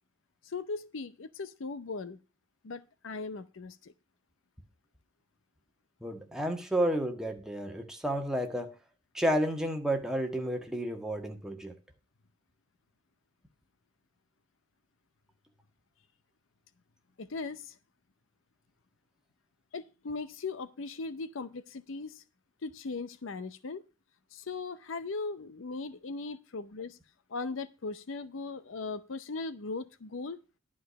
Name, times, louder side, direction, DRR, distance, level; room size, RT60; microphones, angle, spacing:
voice 1, 0.4-2.2 2.6-3.9 17.2-17.8 19.7-22.2 22.6-23.8 24.3-27.0 27.3-30.4, left 3 dB, 70° left, 15 dB, 0.6 m, -38 dB
voice 2, 6.0-8.7 9.1-11.7, right 1 dB, 5° right, 3 dB, 1.5 m, -31 dB
11.0 x 4.9 x 6.9 m, 0.31 s
head